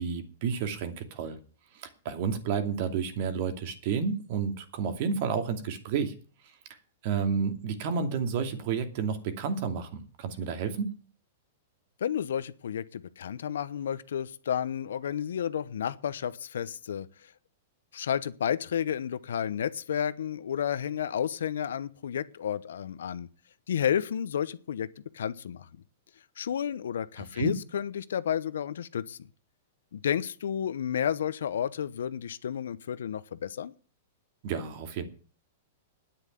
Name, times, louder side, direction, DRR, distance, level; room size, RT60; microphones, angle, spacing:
voice 1, 0.0-1.4 1.7-6.1 7.0-10.9 27.2-27.6 34.4-35.0, right 6 dB, 55° right, 8 dB, 2.6 m, -31 dB
voice 2, 12.0-17.1 17.9-23.3 23.7-24.9 25.1-25.7 26.4-29.2 29.9-33.7, left 9 dB, 80° left, 16 dB, 0.9 m, -31 dB
9.8 x 8.4 x 9.5 m, 0.40 s
hypercardioid pair, 120°, 0 cm